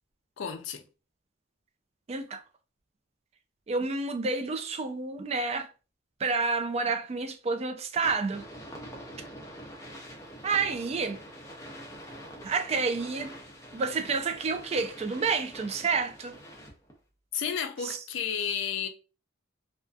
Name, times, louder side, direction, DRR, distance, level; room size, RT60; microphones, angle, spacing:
voice 1, 0.4-0.8 17.3-18.9, left 7 dB, 70° left, 0.4 m, -32 dB
voice 2, 2.1-2.4 3.7-5.7 6.2-8.4 10.4-11.2 12.4-13.3 13.7-16.4 17.8-18.0, right 4 dB, 30° right, 0.3 m, -29 dB
sound 1, 8.0-16.9, equal, 15° left, 0.5 m, -45 dB
2.5 x 2.4 x 2.3 m
head